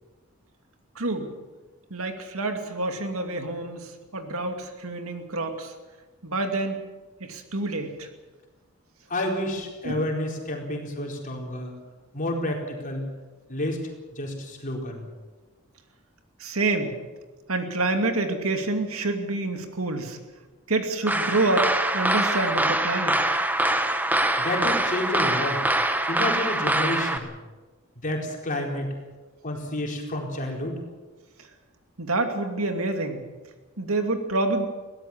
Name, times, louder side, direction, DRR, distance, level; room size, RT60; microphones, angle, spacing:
voice 1, 0.9-1.3 1.9-5.7 6.2-6.8 7.2-8.1 9.8-10.1 16.4-17.0 17.5-20.2 20.7-23.3 31.4-31.5 32.0-33.2 33.8-34.7, right 2 dB, 70° right, 5 dB, 2.5 m, -27 dB
voice 2, 9.1-11.7 12.1-13.1 13.5-13.9 14.2-15.0 24.4-25.6 26.1-27.3 28.0-28.9 29.4-30.8, left 1 dB, 40° left, 1 dB, 4.4 m, -29 dB
sound 1, 21.1-27.2, right 1 dB, 10° right, 1.2 m, -24 dB
22.0 x 17.5 x 7.4 m, 1.3 s
head